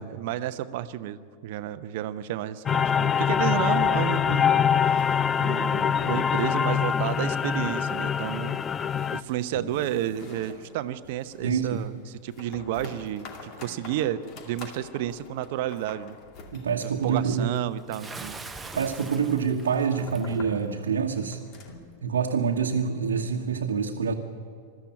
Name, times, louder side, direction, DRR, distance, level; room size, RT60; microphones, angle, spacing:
voice 1, 0.0-5.0 5.4-8.6 9.1-16.2 16.8-18.4, right 12 dB, 50° right, 13 dB, 0.8 m, -31 dB
sound 1, 2.7-9.2, left 7 dB, 20° left, 0.5 m, -24 dB
sound 2, 4.8-7.1 7.3-7.4 7.8-7.9 8.3-22.0, left 4 dB, 40° left, 2.4 m, -46 dB
voice 2, 11.4-11.8 16.5-17.5 18.7-21.4 22.0-24.1, right 6 dB, 65° right, 0 dB, 1.3 m, -26 dB
Bathtub (filling or washing) / Splash splatter, 17.9-20.4, right 3 dB, 10° right, 1.0 m, -42 dB
21.5 x 14.0 x 9.0 m, 2.4 s
figure-of-eight pair, 90°, 0 cm